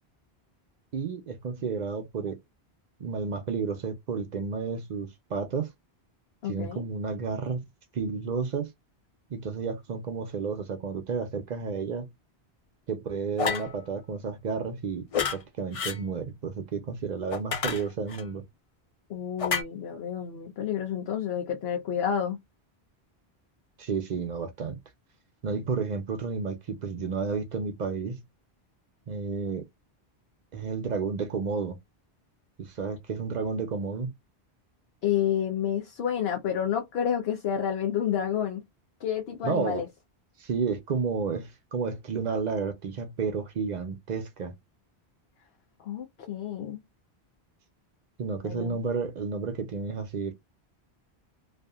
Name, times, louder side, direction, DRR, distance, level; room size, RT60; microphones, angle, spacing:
voice 1, 0.9-2.4 3.0-5.7 6.4-7.6 7.9-8.7 9.3-12.1 12.9-15.1 15.3-18.4 23.8-24.8 25.4-28.2 29.1-29.7 30.5-31.8 32.6-34.1 39.4-39.8 40.4-44.5 48.2-50.3, right 5 dB, 55° right, 0.5 m, -31 dB
voice 2, 6.4-6.8 19.1-22.4 35.0-38.6 39.0-39.9 45.8-46.8 48.5-48.8, left 9 dB, 70° left, 0.9 m, -29 dB
sound 1, 13.4-13.7 15.1-15.4 15.7-16.0 17.3-18.2 19.4-19.6, left 6 dB, 50° left, 0.4 m, -29 dB
2.7 x 2.4 x 2.3 m
omnidirectional pair, 1.1 m